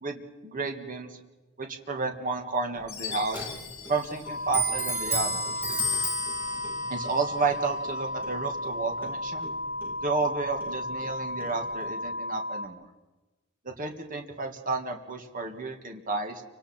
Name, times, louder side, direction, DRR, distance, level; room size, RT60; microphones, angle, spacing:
voice 1, 0.0-1.2 1.6-3.5 3.9-5.5 6.9-9.5 10.0-12.9 13.7-16.4, right 3 dB, 40° right, 4 dB, 1.9 m, -31 dB
Clock, 2.7-12.0, right 1 dB, 10° right, 3.0 m, -35 dB
Chime, 2.9-5.2, left 7 dB, 30° left, 7.4 m, -41 dB
sound 1, 4.3-12.7, left 1 dB, 55° left, 1.2 m, -34 dB
29.0 x 25.0 x 4.4 m, 1.2 s
head